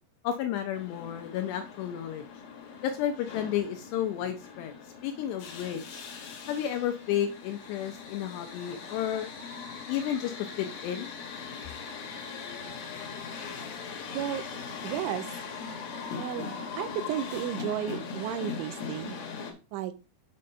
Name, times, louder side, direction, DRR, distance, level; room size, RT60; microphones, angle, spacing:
voice 1, 0.2-2.3 2.8-4.7 5.0-6.0 6.5-9.3 9.9-11.1, left 10 dB, 80° left, 6 dB, 2.5 m, -32 dB
sound 1, 0.7-19.5, left 5 dB, 65° left, 2.9 m, -40 dB
voice 2, 14.8-15.3 16.2-16.5 16.8-19.2 19.7-19.9, right 11 dB, 85° right, 11 dB, 2.9 m, -33 dB
7.5 x 4.1 x 5.4 m, 0.31 s
omnidirectional pair, 5.6 m